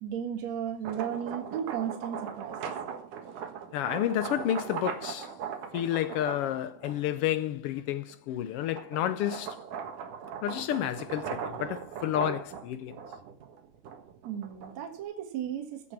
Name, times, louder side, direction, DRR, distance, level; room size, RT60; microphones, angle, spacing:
voice 1, 0.0-2.7 14.2-15.9, right 9 dB, 65° right, 3.0 m, -35 dB
sound 1, 0.7-7.3 7.8-15.0, right 7 dB, 90° right, 3.2 m, -39 dB
voice 2, 3.7-5.3 5.7-9.6 10.4-13.0, left 12 dB, 85° left, 1.3 m, -30 dB
15.5 x 6.8 x 7.3 m
omnidirectional pair, 3.5 m